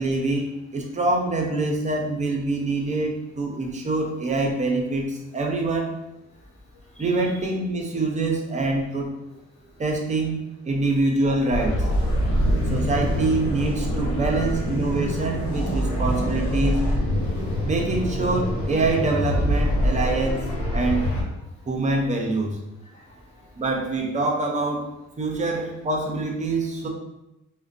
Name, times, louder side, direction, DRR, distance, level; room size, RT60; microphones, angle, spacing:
voice 1, 0.0-6.0 7.0-9.1 9.8-10.4 10.6-11.9 12.7-16.8 17.6-20.4 20.7-21.0 21.7-22.6 23.6-26.9, right 2 dB, 25° right, 1 dB, 0.5 m, -25 dB
voice 2, 6.9-7.5 9.7-9.8 12.2-12.7 14.2-14.4 15.9-16.0 17.4-17.7 22.8-23.6, left 1 dB, 20° left, -6 dB, 1.0 m, -47 dB
sound 1, 11.5-21.2, equal, 75° left, 1.0 m, -25 dB
2.4 x 2.1 x 2.5 m, 0.92 s
cardioid pair, 90°, 30 cm